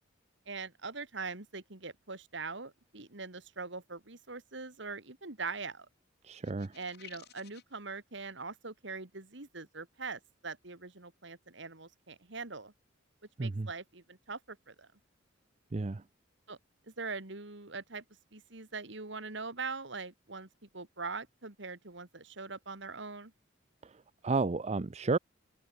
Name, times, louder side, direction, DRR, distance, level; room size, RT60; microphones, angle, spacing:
voice 1, 0.5-5.9 6.7-12.7 13.4-14.9 16.5-16.6 16.9-18.0 18.3-23.3, right 4 dB, 65° right, 2.5 m, -42 dB
voice 2, 6.2-6.8 13.4-13.7 15.7-16.0 23.8-25.2, right 3 dB, 35° right, 0.5 m, -32 dB
sound 1, 6.4-7.8, left 11 dB, 55° left, 1.7 m, -54 dB
head